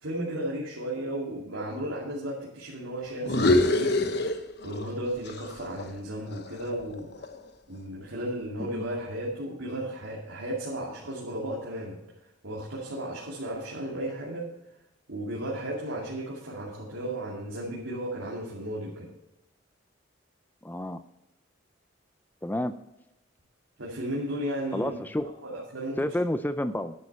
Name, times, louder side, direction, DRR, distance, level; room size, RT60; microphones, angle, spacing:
voice 1, 0.0-3.9 4.6-7.1 7.7-12.0 12.4-14.5 15.1-19.1 23.8-25.0 25.4-26.1, right 1 dB, 85° right, -4 dB, 2.6 m, -34 dB
sound 1, 3.2-5.0 5.3-7.5, left 2 dB, 55° left, 1.0 m, -26 dB
voice 2, 20.6-21.0 22.4-22.7 24.7-25.3 26.0-26.9, left 1 dB, 10° left, 11 dB, 0.4 m, -30 dB
11.0 x 9.5 x 4.2 m, 0.89 s
head